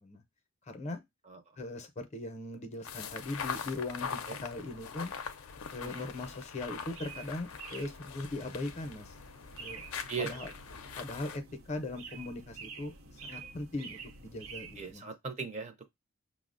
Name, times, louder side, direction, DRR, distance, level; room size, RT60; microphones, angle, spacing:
voice 1, 0.7-1.0 1.6-5.1 5.7-9.1 9.6-9.8 10.2-10.5 11.0-15.1, left 2 dB, 35° left, 0.5 m, -40 dB
sound 1, 2.8-11.4, left 6 dB, 85° left, 0.4 m, -42 dB
sound 2, 6.9-14.9, right 5 dB, 85° right, 0.6 m, -49 dB
voice 2, 10.1-10.5 14.8-15.8, right 5 dB, 35° right, 0.4 m, -39 dB
5.5 x 2.0 x 2.4 m
head